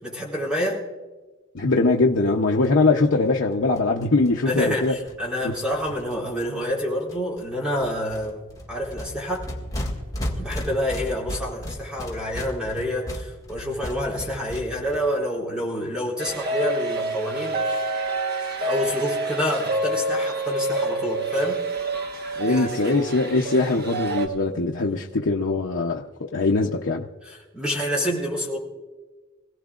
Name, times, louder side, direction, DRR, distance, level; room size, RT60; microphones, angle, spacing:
voice 1, 0.0-0.8 4.5-9.4 10.4-17.8 18.6-21.6 22.4-23.0 27.3-28.6, equal, 5° right, 3.8 m, -28 dB
voice 2, 1.5-5.0 5.4-5.6 22.4-26.1 26.3-27.1, left 3 dB, 75° left, 0.7 m, -22 dB
sound 1, 2.6-2.7 3.0-3.1 3.3-3.4 3.5-6.7 7.1-7.4 7.7-15.0, equal, 20° left, 2.0 m, -35 dB
sound 2, 16.2-24.3, right 2 dB, 50° right, 1.2 m, -28 dB
25.0 x 16.5 x 2.5 m
head